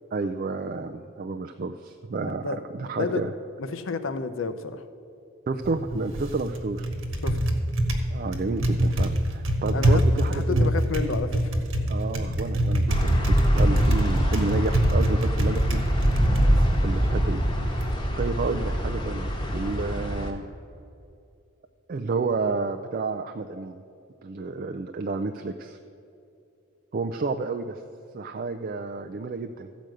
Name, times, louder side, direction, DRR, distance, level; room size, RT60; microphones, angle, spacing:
voice 1, 0.1-3.3 5.5-6.9 8.1-10.7 11.9-15.8 16.8-17.4 18.2-20.5 21.9-23.8 24.2-25.8 26.9-27.8 28.1-29.7, right 3 dB, 40° right, 6 dB, 0.3 m, -30 dB
voice 2, 2.2-3.2 3.6-4.8 7.2-7.4 9.7-11.4, left 4 dB, 65° left, 10 dB, 0.6 m, -31 dB
Typing, 5.5-17.9, equal, 70° right, 1.2 m, -25 dB
sound 1, 12.9-20.3, equal, 20° left, 1.1 m, -24 dB
14.0 x 5.1 x 7.7 m, 2.6 s
head